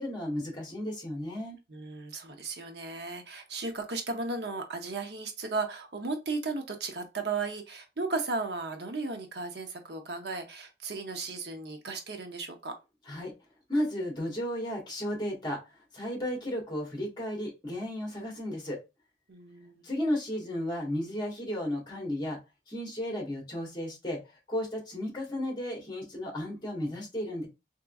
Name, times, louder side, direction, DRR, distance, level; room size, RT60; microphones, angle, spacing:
voice 1, 0.0-1.6 13.1-13.3 13.7-15.6 15.9-18.8 19.8-22.4 22.7-24.2 24.5-27.5, left 1 dB, 25° left, 1.3 m, -33 dB
voice 2, 1.7-12.7 19.3-19.8, right 3 dB, 70° right, 0.7 m, -35 dB
3.5 x 3.0 x 2.3 m
head